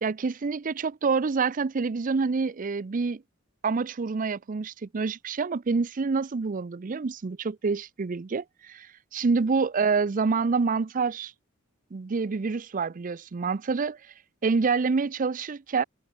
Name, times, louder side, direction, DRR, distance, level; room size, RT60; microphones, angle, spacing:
voice 1, 0.0-3.2 3.6-8.9 9.1-11.3 11.9-14.0 14.4-15.8, right 4 dB, 40° right, 0.5 m, -27 dB
head